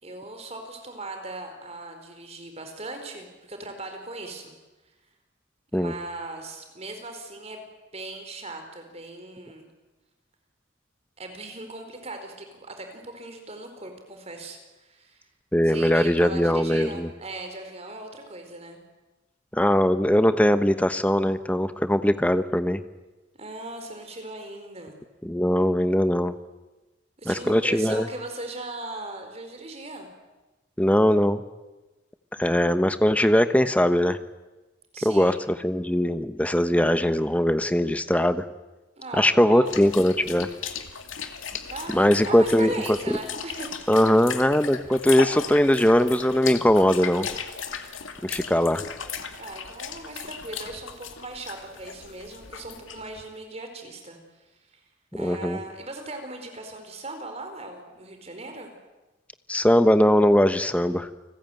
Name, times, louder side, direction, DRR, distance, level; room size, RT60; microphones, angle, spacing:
voice 1, 0.0-4.5 5.7-7.7 7.9-9.7 11.2-15.3 15.6-18.8 23.4-25.0 27.2-30.1 34.9-35.4 39.0-39.8 41.6-43.7 49.4-54.8 55.1-58.7, right 2 dB, 30° right, 5 dB, 4.5 m, -38 dB
voice 2, 15.5-17.1 19.5-22.8 25.2-26.3 27.2-28.1 30.8-31.4 32.4-34.2 35.0-38.4 39.1-40.5 41.9-42.7 43.1-43.2 43.9-47.3 48.2-48.8 55.1-55.6 59.5-61.1, equal, 5° left, 11 dB, 1.1 m, -21 dB
sound 1, 39.7-53.2, left 7 dB, 85° left, 2.4 m, -36 dB
29.5 x 20.0 x 9.2 m, 1.1 s
head